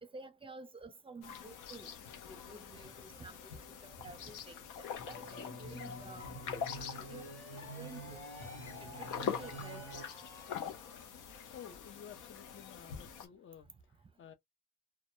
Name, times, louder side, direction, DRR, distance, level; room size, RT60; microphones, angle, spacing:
voice 1, 0.0-1.9 2.3-7.3 7.8-8.2 8.8-10.1, right 3 dB, 20° right, 0.6 m, -52 dB
sound 1, 1.2-13.3, left 7 dB, 85° left, 0.7 m, -44 dB
sound 2, 5.0-10.0, equal, 65° left, 1.0 m, -47 dB
sound 3, 6.7-11.5, right 1 dB, 10° left, 0.9 m, -56 dB
voice 2, 11.5-14.3, left 8 dB, 40° left, 0.5 m, -53 dB
2.2 x 2.1 x 2.9 m
cardioid pair, 90°, 30 cm